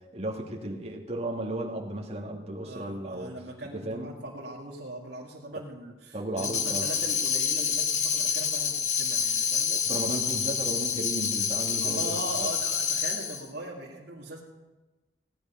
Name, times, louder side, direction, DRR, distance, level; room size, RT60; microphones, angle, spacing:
voice 1, 0.1-3.3 3.7-4.1 6.1-6.8 9.7-12.1, right 1 dB, 35° right, -2 dB, 2.2 m, -34 dB
voice 2, 2.6-9.7 11.8-14.4, right 1 dB, 70° right, -4 dB, 2.1 m, -40 dB
Tambourine, 6.4-13.5, left 6 dB, 40° left, 0.9 m, -28 dB
17.5 x 10.0 x 5.7 m, 1.2 s
head